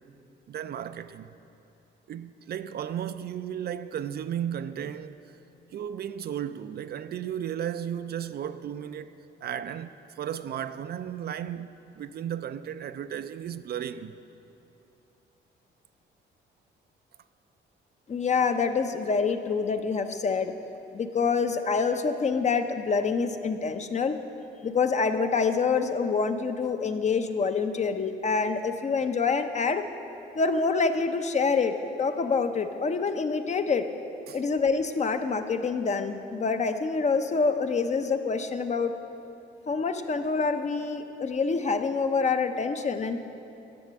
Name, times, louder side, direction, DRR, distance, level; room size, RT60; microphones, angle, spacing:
voice 1, 0.5-1.3 2.1-5.2 5.7-14.2 34.3-34.4, right 9 dB, 55° right, 0.4 m, -35 dB
voice 2, 18.1-20.5 20.9-24.2 24.6-29.9 30.3-33.8 34.3-38.9 39.7-43.2, left 4 dB, 35° left, 0.6 m, -26 dB
10.5 x 6.6 x 7.3 m
cardioid pair, 90°, 20 cm